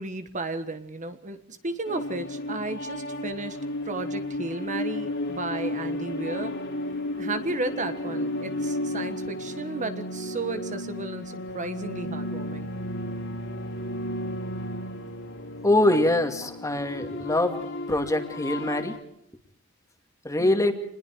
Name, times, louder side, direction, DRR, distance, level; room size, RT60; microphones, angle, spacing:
voice 1, 0.0-3.6 3.8-6.5 7.2-12.7 20.4-20.7, right 2 dB, 35° right, 9 dB, 1.5 m, -34 dB
sound 1, 1.9-19.0, left 1 dB, 65° left, 4.0 m, -33 dB
voice 2, 15.6-17.6 17.9-18.9 20.2-20.7, left 1 dB, 15° left, 6 dB, 2.5 m, -23 dB
27.5 x 21.0 x 4.7 m, 0.71 s
head